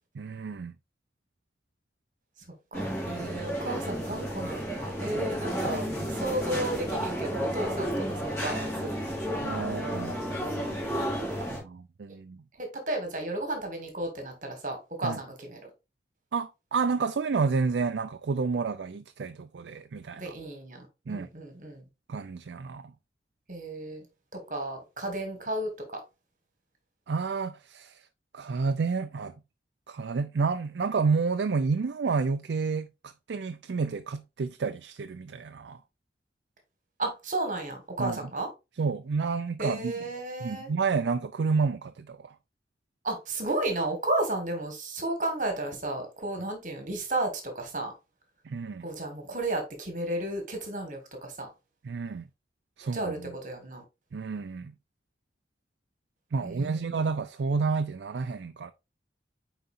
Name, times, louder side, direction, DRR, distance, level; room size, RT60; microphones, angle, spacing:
voice 1, 0.1-0.7 5.7-6.1 9.4-10.2 11.5-12.4 15.0-15.2 16.3-20.3 21.1-21.3 22.1-22.9 27.1-28.1 28.3-29.3 29.9-35.8 38.0-38.2 38.8-39.9 40.4-42.3 48.4-48.9 51.8-52.3 52.8-53.3 54.1-54.7 56.3-58.7, right 4 dB, 85° right, 0.4 m, -30 dB
sound 1, 2.7-11.6, equal, 15° left, 3.4 m, -32 dB
voice 2, 2.7-8.9 12.6-15.7 20.2-21.8 23.5-24.0 24.3-25.7 37.0-38.5 39.6-40.7 43.0-47.9 48.8-51.5 52.9-53.8 56.4-57.1, right 2 dB, 45° right, 1.7 m, -33 dB
sound 2, 5.7-10.7, left 1 dB, 5° right, 2.6 m, -41 dB
9.3 x 4.0 x 2.6 m
head